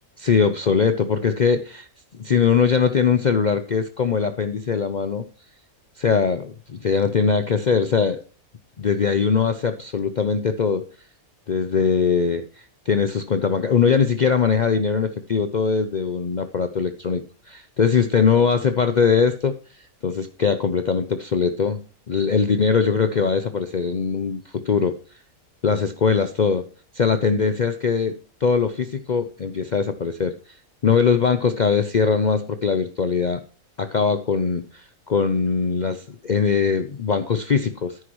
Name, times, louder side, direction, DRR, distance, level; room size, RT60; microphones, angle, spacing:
voice 1, 0.2-1.9 2.1-5.3 6.0-8.2 8.8-10.8 11.5-12.4 12.9-19.5 20.0-21.8 22.1-25.0 25.6-26.6 26.9-30.3 30.8-33.4 33.8-38.0, left 6 dB, 55° left, 10 dB, 0.5 m, -21 dB
10.0 x 9.4 x 3.0 m, 0.38 s
omnidirectional pair, 1.5 m